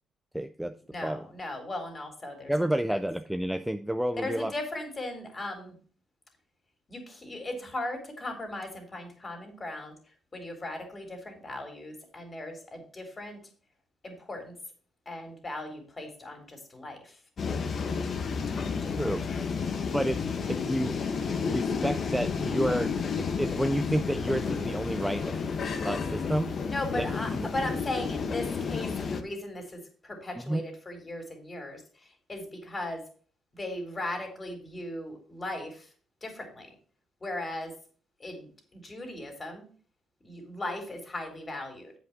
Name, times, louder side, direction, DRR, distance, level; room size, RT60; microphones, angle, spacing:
voice 1, 0.3-0.7 1.0-1.2 2.5-4.5 19.0-19.3 19.9-20.2 20.5-21.0 21.5-25.3 25.8-26.5 27.0-27.1 27.4-27.5 30.5-30.6, right 1 dB, 5° right, 9 dB, 0.5 m, -30 dB
voice 2, 0.9-2.5 2.9-3.0 4.2-5.8 6.9-10.0 10.3-13.4 14.0-14.5 15.1-17.2 18.4-19.4 26.7-33.0 33.5-35.9 36.2-36.7 37.2-37.8 38.2-39.7 40.2-41.9, left 1 dB, 30° left, 3 dB, 3.3 m, -38 dB
sound 1, 17.4-29.2, left 5 dB, 50° left, 1.0 m, -31 dB
8.2 x 5.2 x 5.8 m, 0.43 s
cardioid pair, 90°, 0 cm